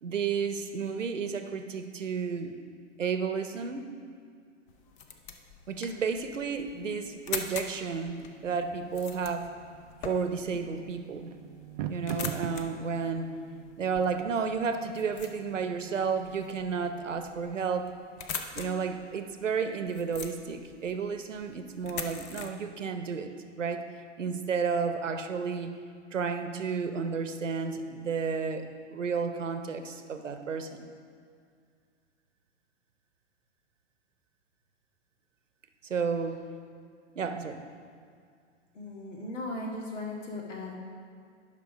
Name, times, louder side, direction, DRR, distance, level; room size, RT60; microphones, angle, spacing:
voice 1, 0.0-2.6 3.0-3.9 5.7-9.5 10.0-11.3 11.9-13.3 13.8-17.9 18.5-23.3 23.6-23.8 24.2-25.7 26.1-30.9 35.8-36.4 37.2-37.6, right 5 dB, 90° right, 7 dB, 0.8 m, -32 dB
sound 1, 4.7-22.5, left 6 dB, 20° left, 0.5 m, -44 dB
sound 2, 7.2-18.0, right 10 dB, 35° right, 0.4 m, -45 dB
voice 2, 38.7-40.7, left 2 dB, 80° left, -1 dB, 2.1 m, -37 dB
10.5 x 6.0 x 4.9 m, 2.2 s
hypercardioid pair, 120°, 36 cm